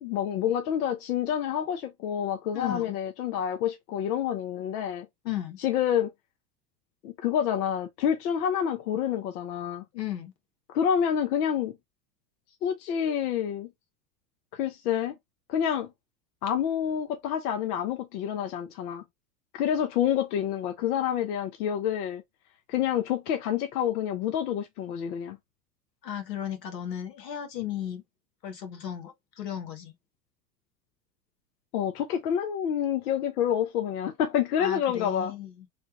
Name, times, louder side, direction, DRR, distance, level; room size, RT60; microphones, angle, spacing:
voice 1, 0.0-5.1 5.6-6.1 7.0-9.8 10.7-11.7 12.6-13.7 14.5-15.1 15.5-15.9 16.4-19.0 19.5-22.2 22.7-25.4 31.7-35.3, left 9 dB, 65° left, 0.7 m, -28 dB
voice 2, 2.5-2.9 5.2-5.6 9.9-10.3 26.0-28.0 28.4-29.9 34.6-35.5, left 10 dB, 80° left, 1.1 m, -35 dB
3.3 x 2.2 x 2.9 m
hypercardioid pair, 85°, 49 cm